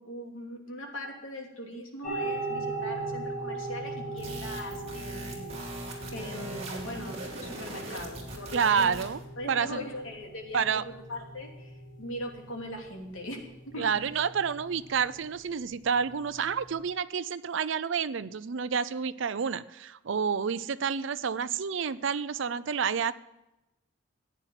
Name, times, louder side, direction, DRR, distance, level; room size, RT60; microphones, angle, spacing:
voice 1, 0.0-5.6 6.1-8.9 9.4-11.7 12.0-13.9, left 1 dB, 80° left, 1 dB, 3.0 m, -40 dB
sound 1, 2.0-16.8, right 2 dB, 40° left, 6.1 m, -39 dB
sound 2, 4.2-9.2, right 2 dB, 30° right, 3.1 m, -41 dB
voice 2, 8.5-9.2 9.5-9.9 10.5-10.8 13.8-23.1, right 6 dB, 65° right, 13 dB, 0.5 m, -29 dB
14.5 x 9.2 x 5.8 m, 0.94 s
head